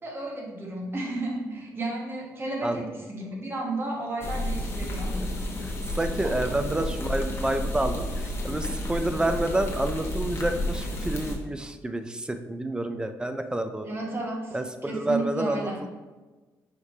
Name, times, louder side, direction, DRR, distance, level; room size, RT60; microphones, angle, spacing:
voice 1, 0.0-5.2 6.2-6.3 13.8-15.8, right 2 dB, 35° right, -2 dB, 1.2 m, -33 dB
sound 1, 4.2-11.4, left 1 dB, 40° left, 1.0 m, -31 dB
voice 2, 5.6-13.9 14.5-15.9, right 1 dB, 10° right, 8 dB, 0.4 m, -29 dB
5.0 x 3.1 x 2.8 m, 1.2 s
cardioid pair, 85°, 7 cm